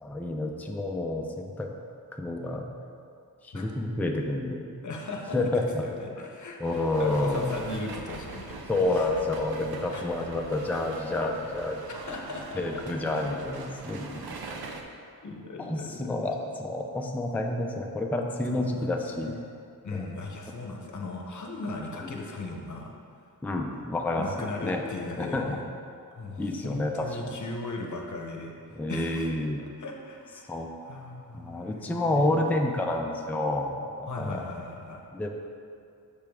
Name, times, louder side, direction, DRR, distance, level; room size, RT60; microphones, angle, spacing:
voice 1, 0.0-1.7 2.2-2.7 3.4-4.6 5.3-5.8 6.6-7.6 8.7-11.8 12.5-14.4 15.6-19.3 19.9-20.1 22.0-22.1 23.4-24.8 25.2-25.6 26.4-27.4 28.7-29.6 30.5-30.7 31.3-34.5 35.1-35.3, left 2 dB, 5° left, 2 dB, 0.4 m, -29 dB
voice 2, 4.8-8.6 8.9-9.2 9.9-10.0 12.1-12.8 15.2-16.2 18.5-18.9 19.2-19.5 19.8-22.9 24.1-25.6 26.1-29.3 29.8-30.5 30.9-32.4 34.1-35.0, left 2 dB, 50° left, 1 dB, 0.8 m, -38 dB
sound 1, 6.6-14.8, right 3 dB, 75° right, 0.6 m, -42 dB
6.7 x 5.0 x 3.5 m, 2.5 s
wide cardioid pair, 115°, 38 cm